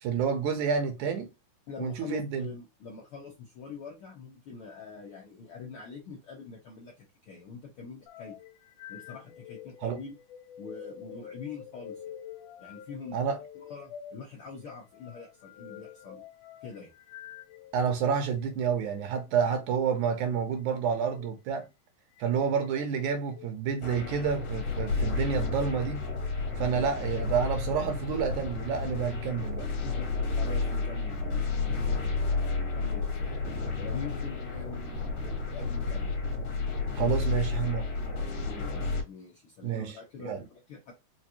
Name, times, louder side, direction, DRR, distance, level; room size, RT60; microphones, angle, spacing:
voice 1, 0.0-1.3 1.8-2.5 9.8-10.0 13.1-13.4 17.7-21.6 22.2-26.0 26.6-29.7 37.0-37.9 39.6-39.9 40.2-40.4, right 6 dB, 75° right, 2.1 m, -29 dB
voice 2, 1.7-8.3 8.9-10.2 10.6-12.0 12.6-13.2 13.5-16.2 16.6-16.9 29.8-30.1 30.4-36.1 36.9-37.3 38.4-40.9, left 5 dB, 70° left, 1.3 m, -44 dB
sound 1, 8.1-18.0 18.8-19.1 21.0-21.4 22.2-22.7 23.2-23.5 24.3-24.8 25.3-26.4, left 9 dB, 90° left, 2.2 m, -48 dB
sound 2, 23.8-39.0, left 4 dB, 55° left, 2.0 m, -31 dB
5.1 x 2.5 x 2.8 m
omnidirectional pair, 3.6 m